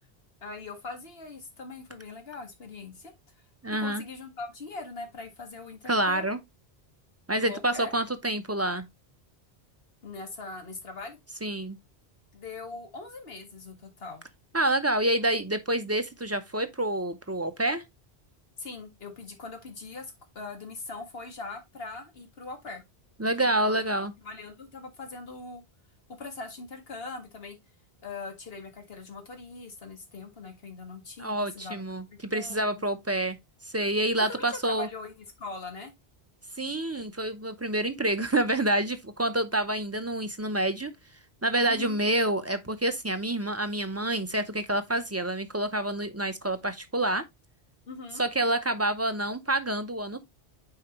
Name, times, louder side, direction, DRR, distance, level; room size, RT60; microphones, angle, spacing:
voice 1, 0.4-3.1 3.8-6.3 7.4-7.9 10.0-11.2 12.3-14.2 18.6-22.8 23.2-25.6 26.2-27.6 28.0-31.8 32.1-32.8 34.3-35.9 41.7-42.0 47.9-48.2, left 3 dB, 65° left, 1.9 m, -41 dB
voice 2, 3.6-4.0 5.9-6.4 7.3-8.8 11.4-11.8 14.5-17.8 23.2-24.1 31.2-33.4 33.6-34.9 36.6-40.9 41.4-47.2 48.2-50.2, right 1 dB, 20° right, 0.5 m, -28 dB
8.5 x 4.6 x 2.9 m
omnidirectional pair, 1.1 m